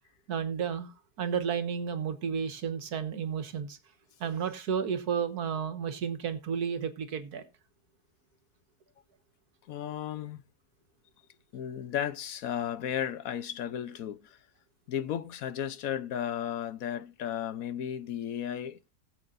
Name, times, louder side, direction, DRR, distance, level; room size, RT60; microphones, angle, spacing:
voice 1, 0.3-3.8 4.2-7.4, right 7 dB, 85° right, 1.8 m, -32 dB
voice 2, 9.7-10.4 11.5-14.4 14.9-18.8, left 9 dB, 70° left, 1.2 m, -34 dB
20.0 x 7.7 x 2.5 m
omnidirectional pair, 1.6 m